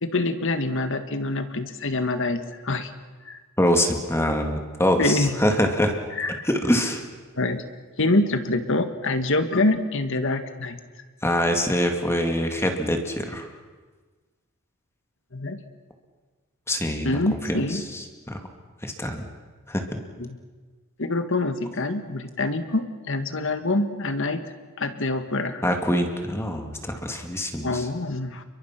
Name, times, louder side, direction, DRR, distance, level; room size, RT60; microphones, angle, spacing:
voice 1, 0.0-2.9 3.3-3.4 5.0-5.4 6.2-6.5 7.4-7.6 8.0-10.8 15.3-15.6 17.0-17.8 20.2-20.4 21.0-24.4 24.8-25.6 27.6-28.4, left 2 dB, 65° left, 8 dB, 1.8 m, -25 dB
voice 2, 3.6-6.0 6.4-7.0 11.2-13.5 16.7-18.4 18.8-19.2 19.7-20.0 25.6-27.9, equal, 10° left, 4 dB, 2.2 m, -24 dB
29.5 x 23.0 x 6.0 m, 1.4 s
head